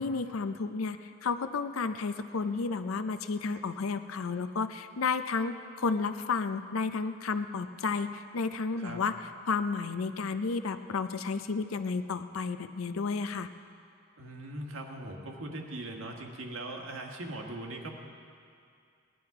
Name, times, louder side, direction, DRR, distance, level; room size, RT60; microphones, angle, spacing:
voice 1, 0.0-9.1 9.5-13.5, left 4 dB, 80° left, 10 dB, 0.5 m, -32 dB
voice 2, 14.2-18.0, right 1 dB, 75° right, 1 dB, 1.5 m, -40 dB
18.0 x 11.0 x 4.8 m, 2.3 s
head